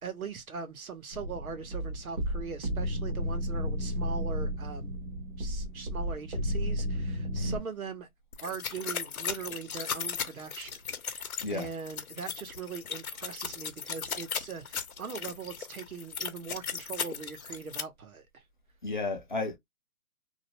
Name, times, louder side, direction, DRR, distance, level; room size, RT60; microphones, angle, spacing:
voice 1, 0.0-4.9 5.4-8.1 8.4-18.4, right 5 dB, 75° right, 0.9 m, -41 dB
sound 1, 1.1-7.6, equal, 35° right, 0.8 m, -33 dB
sound 2, 8.3-17.8, left 7 dB, 75° left, 0.8 m, -37 dB
voice 2, 18.8-19.6, left 3 dB, 35° left, 0.6 m, -33 dB
2.5 x 2.1 x 2.8 m
hypercardioid pair, 165°, 43 cm